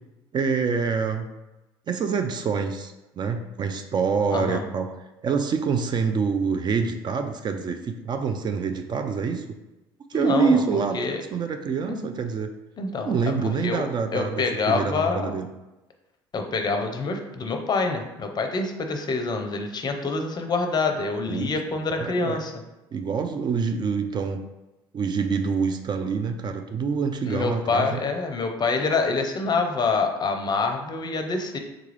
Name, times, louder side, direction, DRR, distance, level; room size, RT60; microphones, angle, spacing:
voice 1, 0.3-1.3 1.9-4.9 5.2-9.4 10.1-12.5 13.1-15.5 21.3-21.5 21.9-22.4 22.9-24.4 24.9-28.0, right 5 dB, 35° right, 7 dB, 0.3 m, -26 dB
voice 2, 4.3-4.6 10.1-10.6 10.9-11.2 11.9-12.0 12.8-13.1 13.6-15.3 16.3-22.5 27.3-31.6, left 4 dB, 35° left, 4 dB, 0.5 m, -26 dB
3.6 x 2.3 x 3.2 m, 1.0 s
hypercardioid pair, 70°, 12 cm